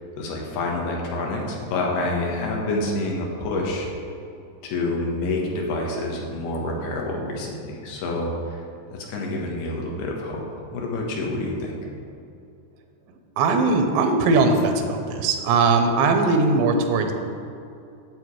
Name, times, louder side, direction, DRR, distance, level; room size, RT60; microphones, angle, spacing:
voice 1, 0.2-3.9 4.6-8.6 8.9-11.7, left 2 dB, 75° left, -1 dB, 3.3 m, -27 dB
voice 2, 13.4-17.1, right 3 dB, 90° right, 5 dB, 3.1 m, -20 dB
10.5 x 8.1 x 4.7 m, 2.7 s
omnidirectional pair, 4.8 m